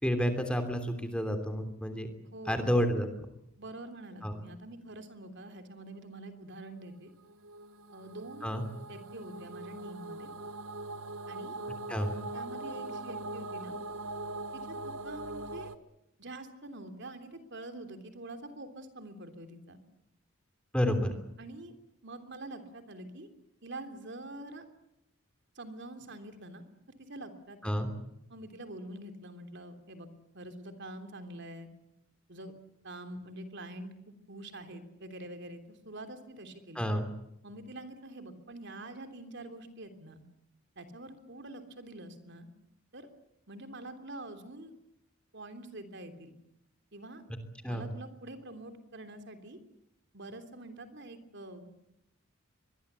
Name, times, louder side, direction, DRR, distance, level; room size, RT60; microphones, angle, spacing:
voice 1, 0.0-2.1 2.5-3.1 4.2-4.3 8.4-8.6 11.9-12.1 20.7-21.1 27.6-27.9 36.7-37.1 47.6-47.9, equal, 5° left, 7 dB, 3.1 m, -30 dB
voice 2, 2.3-2.7 3.6-7.1 7.9-8.5 8.9-10.3 11.3-11.6 12.3-13.8 14.5-15.8 16.2-19.8 21.4-21.7 22.0-23.3 23.6-24.6 25.5-26.6 27.0-27.7 28.3-31.7 32.3-32.5 32.8-36.8 37.4-40.2 40.7-42.5 42.9-43.1 43.5-44.7 45.3-46.3 46.9-47.2 47.7-49.6 50.1-51.7, right 1 dB, 60° right, 7 dB, 3.3 m, -46 dB
sound 1, 7.3-15.8, right 2 dB, 75° right, 1.4 m, -41 dB
25.0 x 22.0 x 8.3 m, 0.82 s
head